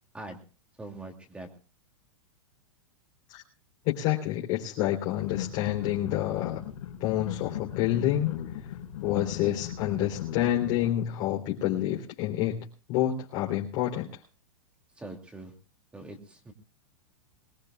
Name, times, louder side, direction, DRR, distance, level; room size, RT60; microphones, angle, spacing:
voice 1, 0.8-1.5 15.0-15.5 15.9-16.5, right 2 dB, 5° right, 3 dB, 2.6 m, -42 dB
voice 2, 3.9-6.6 7.0-8.3 9.0-14.1, left 12 dB, 40° left, -2 dB, 3.5 m, -28 dB
sound 1, 5.2-10.9, left 11 dB, 70° left, 4.0 m, -37 dB
23.0 x 19.5 x 2.3 m, 0.36 s
supercardioid pair, 160°, 18 cm